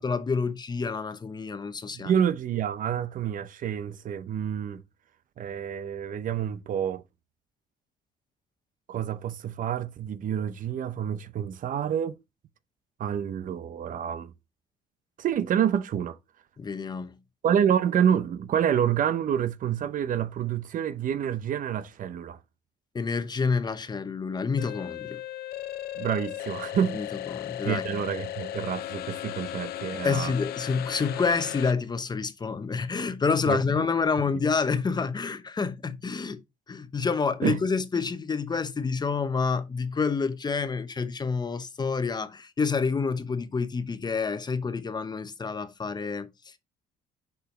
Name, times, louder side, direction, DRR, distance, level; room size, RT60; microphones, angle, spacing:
voice 1, 0.0-2.1 16.6-17.1 22.9-25.2 26.9-27.8 30.0-36.4 36.7-46.6, left 5 dB, 25° left, 1.0 m, -28 dB
voice 2, 1.9-4.8 5.4-7.0 8.9-12.2 13.0-14.3 15.2-16.2 17.4-22.4 26.0-27.0 27.6-30.3 33.5-33.6 37.4-37.6, right 9 dB, 55° right, 0.7 m, -28 dB
sound 1, 24.6-31.7, left 13 dB, 65° left, 0.7 m, -36 dB
7.2 x 4.9 x 3.9 m
cardioid pair, 110°, 17 cm